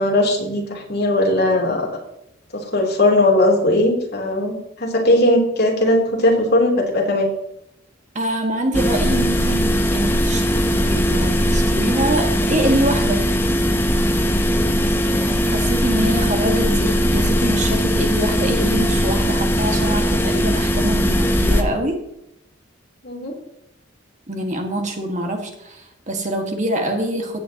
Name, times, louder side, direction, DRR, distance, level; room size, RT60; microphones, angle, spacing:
voice 1, 0.0-1.9 2.5-7.3 23.0-23.3, left 1 dB, 50° left, -1 dB, 3.3 m, -18 dB
voice 2, 8.1-13.3 15.4-22.0 24.3-27.4, right 1 dB, 35° right, 3 dB, 1.8 m, -24 dB
sound 1, 8.7-21.6, equal, 10° left, 0.9 m, -19 dB
15.5 x 9.2 x 3.0 m, 0.81 s
head